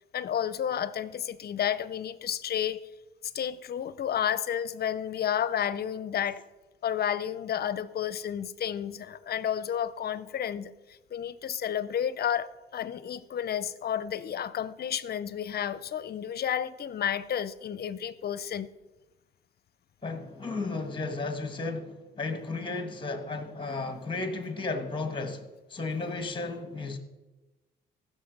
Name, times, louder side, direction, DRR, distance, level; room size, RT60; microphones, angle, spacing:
voice 1, 0.1-2.8 3.3-6.4 6.8-18.7, left 9 dB, 55° left, 0.6 m, -31 dB
voice 2, 20.0-25.4 25.7-27.0, left 3 dB, 25° left, 1.6 m, -34 dB
15.0 x 6.4 x 5.3 m
cardioid pair, 90°, 20 cm